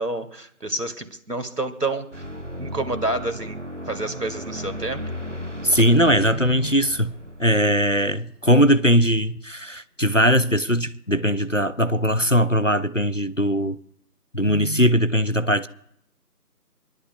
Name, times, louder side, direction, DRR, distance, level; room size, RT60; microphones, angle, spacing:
voice 1, 0.0-2.2 2.6-3.6 3.9-5.0, right 2 dB, 75° right, 2.1 m, -28 dB
sound 1, 2.1-8.8, equal, 50° right, 0.7 m, -35 dB
voice 2, 5.6-7.1 7.4-13.8 14.3-15.7, equal, 55° left, 0.5 m, -20 dB
27.0 x 11.5 x 2.3 m
figure-of-eight pair, 180°, 48 cm